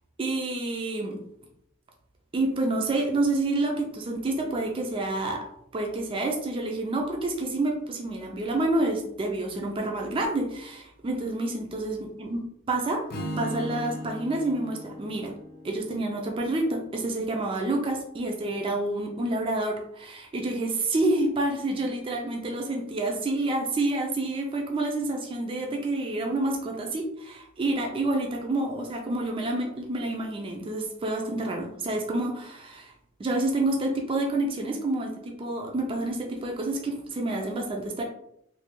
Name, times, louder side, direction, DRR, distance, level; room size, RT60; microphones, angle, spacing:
voice 1, 0.2-1.2 2.3-5.5 5.7-12.4 12.7-13.0 13.4-15.3 15.6-32.9 33.2-38.0, right 2 dB, 25° right, 1 dB, 0.4 m, -28 dB
Strum, 13.1-17.3, equal, 45° left, 0.5 m, -38 dB
3.2 x 2.2 x 2.9 m, 0.74 s
head